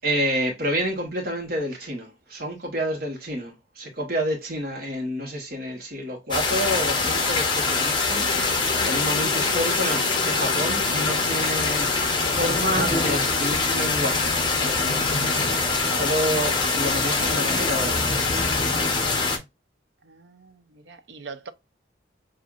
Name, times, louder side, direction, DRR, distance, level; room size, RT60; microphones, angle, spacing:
voice 1, 0.0-15.3 15.9-18.1, equal, 55° right, 1.1 m, -29 dB
sound 1, 6.3-19.4, left 3 dB, 25° left, 0.8 m, -23 dB
sound 2, 8.2-15.5, left 4 dB, 70° left, 0.5 m, -38 dB
voice 2, 20.0-21.5, right 4 dB, 70° right, 0.6 m, -42 dB
6.1 x 2.5 x 2.4 m
head